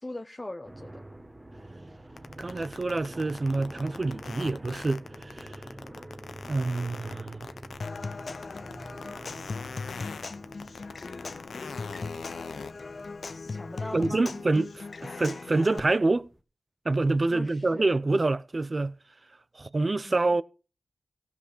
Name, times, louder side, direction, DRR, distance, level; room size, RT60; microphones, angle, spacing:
voice 1, 0.0-1.0 13.4-14.3 17.3-17.9 19.9-20.2, left 1 dB, 25° left, 1.0 m, -40 dB
sound 1, 0.6-16.4, right 1 dB, 20° right, 1.5 m, -47 dB
sound 2, 2.2-12.7, left 5 dB, 80° left, 0.9 m, -42 dB
voice 2, 2.4-5.5 6.5-7.5 13.9-16.3 16.8-19.0 19.6-20.4, right 2 dB, 40° right, 0.7 m, -27 dB
Human voice / Acoustic guitar / Percussion, 7.8-15.8, left 4 dB, 60° left, 0.5 m, -39 dB
16.5 x 5.5 x 6.7 m
cardioid pair, 50°, 0 cm